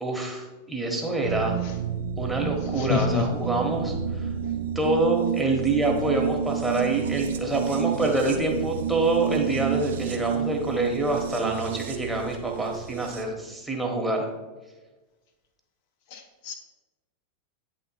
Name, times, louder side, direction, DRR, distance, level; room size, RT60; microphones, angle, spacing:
voice 1, 0.0-1.6 2.2-4.3 4.7-14.3, right 2 dB, 5° right, 0 dB, 1.2 m, -26 dB
sound 1, 1.2-13.2, right 8 dB, 60° right, 0.5 m, -30 dB
voice 2, 2.8-3.2 16.1-16.5, left 6 dB, 50° left, 5 dB, 0.6 m, -27 dB
8.7 x 3.7 x 4.4 m, 1.2 s
figure-of-eight pair, 90°, 0 cm